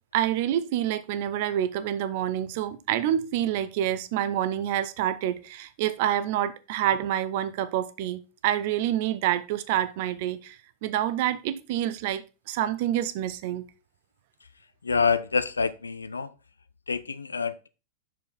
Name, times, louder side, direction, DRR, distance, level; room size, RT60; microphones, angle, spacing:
voice 1, 0.1-10.6 10.8-13.6, right 11 dB, 50° right, 0.7 m, -27 dB
voice 2, 14.8-16.3 16.9-17.7, left 5 dB, 75° left, 0.5 m, -27 dB
6.5 x 5.0 x 4.6 m
figure-of-eight pair, 90°, 0 cm